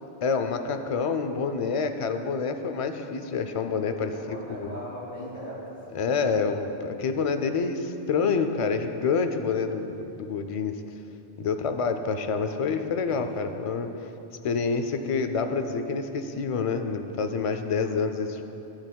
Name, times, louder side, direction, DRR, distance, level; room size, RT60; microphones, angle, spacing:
voice 1, 0.2-4.8 5.9-10.8 11.4-13.9 14.4-18.4, left 5 dB, 50° left, 7 dB, 0.4 m, -27 dB
voice 2, 4.1-6.1 13.1-13.2 17.7-18.0, equal, 45° right, -11 dB, 2.4 m, -39 dB
16.5 x 8.0 x 2.3 m, 3.0 s
omnidirectional pair, 1.1 m